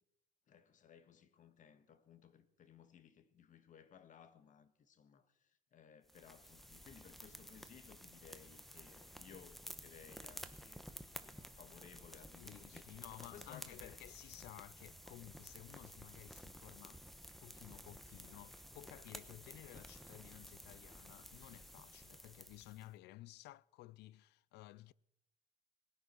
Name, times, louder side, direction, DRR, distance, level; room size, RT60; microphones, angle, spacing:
voice 1, 0.5-10.9 11.2-14.0, left 7 dB, 50° left, 1.5 m, -60 dB
sound 1, 6.1-22.9, equal, ahead, 1.1 m, -54 dB
sound 2, 8.3-14.0, right 7 dB, 60° right, 3.9 m, -79 dB
voice 2, 12.4-17.0 17.4-24.9, left 17 dB, 80° left, 0.4 m, -55 dB
19.5 x 9.8 x 6.2 m
cardioid pair, 110°, 17 cm